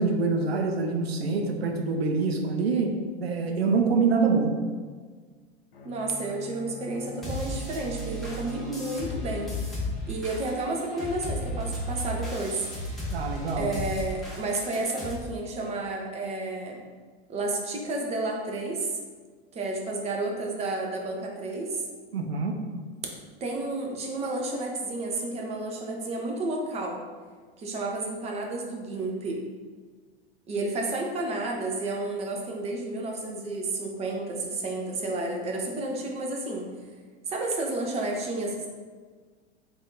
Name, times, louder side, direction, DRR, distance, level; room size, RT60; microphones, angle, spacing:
voice 1, 0.0-2.9 3.2-4.5 13.1-13.7 22.1-22.6, right 4 dB, 70° right, 3 dB, 0.6 m, -25 dB
Bowed string instrument, 5.7-9.9, left 6 dB, 65° left, 0.7 m, -45 dB
voice 2, 5.8-9.5 10.1-12.7 13.6-16.8 17.3-18.9 19.5-21.8 23.4-27.0 27.6-29.4 30.5-36.7 37.3-38.7, right 2 dB, 20° right, 0 dB, 0.5 m, -31 dB
sound 1, 7.2-15.2, equal, ahead, 0.9 m, -35 dB
3.5 x 2.5 x 3.7 m, 1.5 s
figure-of-eight pair, 90°, 32 cm